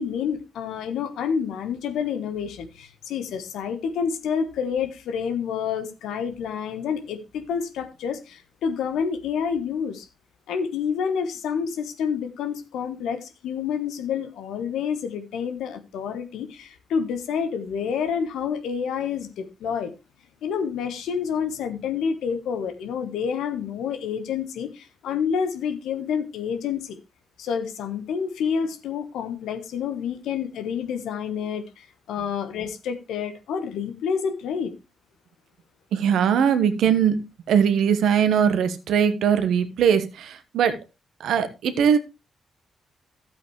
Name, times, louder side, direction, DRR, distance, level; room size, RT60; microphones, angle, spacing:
voice 1, 0.0-10.1 10.5-19.9 20.4-27.0 27.4-34.7, left 7 dB, 75° left, 1.2 m, -28 dB
voice 2, 35.9-37.2 37.5-40.8 41.2-42.0, right 7 dB, 70° right, 1.2 m, -20 dB
12.5 x 8.0 x 3.2 m
hypercardioid pair, 40°, 0 cm